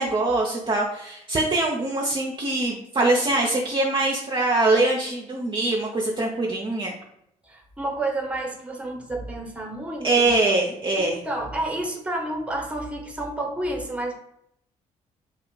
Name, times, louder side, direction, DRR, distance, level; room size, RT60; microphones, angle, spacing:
voice 1, 0.0-7.0 10.0-11.2, right 2 dB, 25° right, -2 dB, 0.6 m, -23 dB
voice 2, 7.4-10.3 11.0-14.2, right 1 dB, 5° right, 1 dB, 1.0 m, -30 dB
3.0 x 2.4 x 3.7 m, 0.76 s
hypercardioid pair, 45°, 18 cm